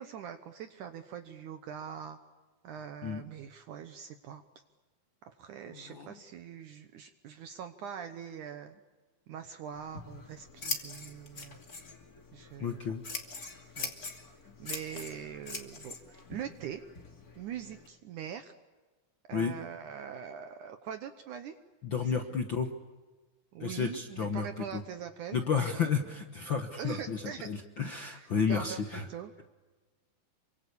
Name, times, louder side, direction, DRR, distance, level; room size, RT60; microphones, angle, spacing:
voice 1, 0.0-2.2 2.6-4.4 5.2-8.8 9.3-11.6 12.3-12.8 13.8-13.9 14.6-16.8 17.4-18.5 19.3-21.6 22.0-22.1 23.5-25.9 26.8-27.5 28.1-29.3, right 8 dB, 70° right, 8 dB, 2.3 m, -43 dB
voice 2, 5.7-6.1 12.6-13.0 19.3-19.5 21.8-22.7 23.6-24.8 25.3-29.1, left 6 dB, 55° left, 5 dB, 1.3 m, -32 dB
Scissors, 9.7-17.9, left 3 dB, 30° left, 2.5 m, -43 dB
28.0 x 24.5 x 8.4 m, 1.3 s
omnidirectional pair, 4.1 m